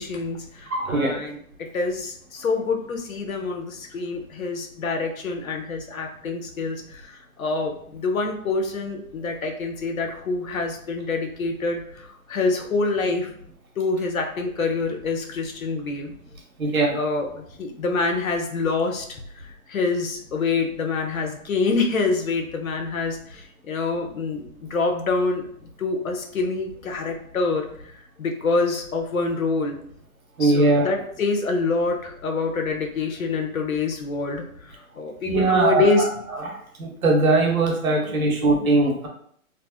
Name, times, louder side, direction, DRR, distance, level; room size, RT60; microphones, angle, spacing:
voice 1, 0.0-13.3 13.8-16.1 16.9-19.1 19.3-25.4 25.8-27.6 28.2-29.8 30.4-36.1, left 3 dB, 70° left, 4 dB, 0.9 m, -26 dB
voice 2, 0.7-1.1 16.6-16.9 30.4-30.9 35.2-36.1 36.4-39.1, right 2 dB, 75° right, 0 dB, 1.3 m, -20 dB
3.3 x 2.0 x 4.2 m, 0.64 s
hypercardioid pair, 150°, 42 cm